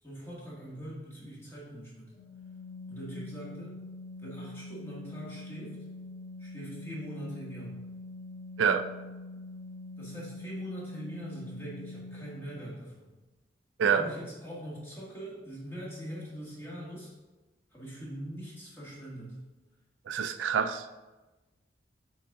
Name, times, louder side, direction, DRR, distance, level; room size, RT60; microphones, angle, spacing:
voice 1, 0.0-2.1 2.9-3.7 4.2-5.8 6.4-7.7 10.0-13.1 13.9-17.1 17.7-19.4, equal, 15° left, -6 dB, 1.8 m, -42 dB
Organ, 2.1-12.7, left 2 dB, 45° left, 1.6 m, -44 dB
voice 2, 20.1-20.9, right 7 dB, 85° right, 10 dB, 0.4 m, -26 dB
7.5 x 4.2 x 3.6 m, 1.1 s
head